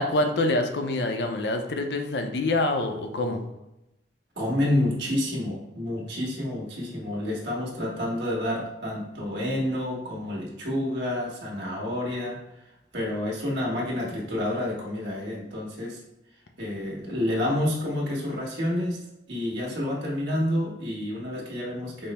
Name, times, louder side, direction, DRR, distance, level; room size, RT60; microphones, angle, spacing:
voice 1, 0.0-3.4, left 2 dB, 65° left, 5 dB, 0.5 m, -26 dB
voice 2, 4.3-12.5 12.9-16.0 16.6-22.1, left 1 dB, 70° right, -4 dB, 1.3 m, -29 dB
5.3 x 2.0 x 4.1 m, 0.91 s
head